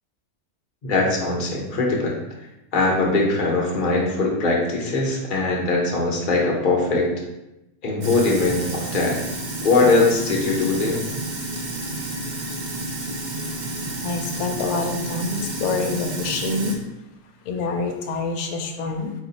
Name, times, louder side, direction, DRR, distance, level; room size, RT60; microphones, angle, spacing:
voice 1, 0.8-2.1 2.7-7.1 7.8-9.2 9.6-11.0, left 3 dB, 45° left, -2 dB, 0.8 m, -21 dB
Sink (filling or washing), 8.0-16.7, right 1 dB, 55° right, 0.5 m, -30 dB
voice 2, 13.7-16.8 17.4-19.1, left 3 dB, 75° left, 4 dB, 1.0 m, -27 dB
4.2 x 2.4 x 4.0 m, 0.92 s
omnidirectional pair, 1.6 m